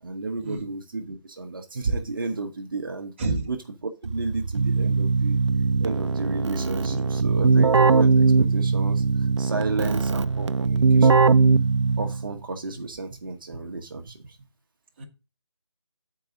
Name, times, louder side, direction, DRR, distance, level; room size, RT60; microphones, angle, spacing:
voice 1, 0.0-3.1 3.5-5.4 5.8-11.3 12.0-14.4, right 3 dB, 45° right, 3 dB, 1.0 m, -32 dB
voice 2, 3.2-3.5 6.8-7.5 12.7-12.8 15.0-15.1, right 2 dB, 25° right, 2 dB, 1.1 m, -31 dB
Keyboard (musical), 4.0-12.3, right 4 dB, 70° right, 0.6 m, -20 dB
7.6 x 4.8 x 5.0 m, 0.30 s
figure-of-eight pair, 165°, 15 cm